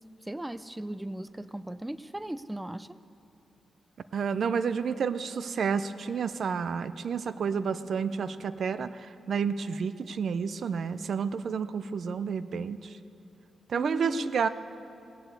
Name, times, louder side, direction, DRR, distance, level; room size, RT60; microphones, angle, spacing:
voice 1, 0.3-3.0 13.7-14.3, right 1 dB, 10° right, 15 dB, 0.4 m, -37 dB
voice 2, 4.1-13.0 13.7-14.5, right 6 dB, 70° right, 13 dB, 0.5 m, -30 dB
18.0 x 7.9 x 8.2 m, 2.9 s
wide cardioid pair, 105°, 0 cm